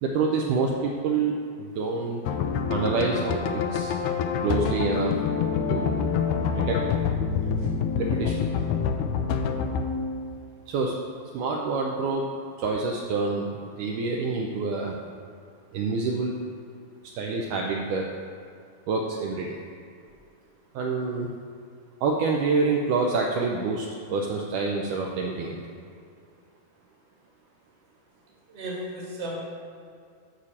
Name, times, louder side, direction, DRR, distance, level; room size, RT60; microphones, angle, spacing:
voice 1, 0.0-2.2 2.7-3.9 4.4-5.1 5.7-6.8 8.0-8.4 10.7-10.9 11.3-12.3 12.6-13.5 13.8-14.9 15.7-16.3 17.1-18.1 18.9-19.6 20.8-21.3 22.0-25.6, right 4 dB, 75° right, 0 dB, 1.9 m, -27 dB
sound 1, 2.3-10.3, left 6 dB, 85° left, 1.8 m, -26 dB
voice 2, 28.5-29.4, equal, 15° right, -5 dB, 1.2 m, -35 dB
9.3 x 4.9 x 7.2 m, 2.3 s
omnidirectional pair, 4.2 m